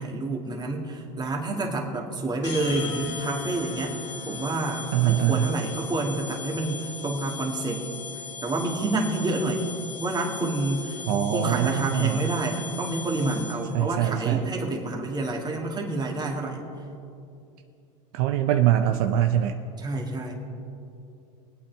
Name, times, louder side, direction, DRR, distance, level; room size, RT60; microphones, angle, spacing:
voice 1, 0.0-4.0 4.3-7.8 8.4-9.7 10.0-11.0 11.3-16.6 19.8-20.3, right 2 dB, 20° right, 0 dB, 2.1 m, -28 dB
sound 1, 2.4-13.8, left 5 dB, 80° left, 3.4 m, -38 dB
voice 2, 4.9-5.5 11.1-12.3 13.7-14.5 18.1-19.6, right 11 dB, 60° right, 6 dB, 0.7 m, -23 dB
22.5 x 8.6 x 3.5 m, 2.6 s
hypercardioid pair, 105°, 21 cm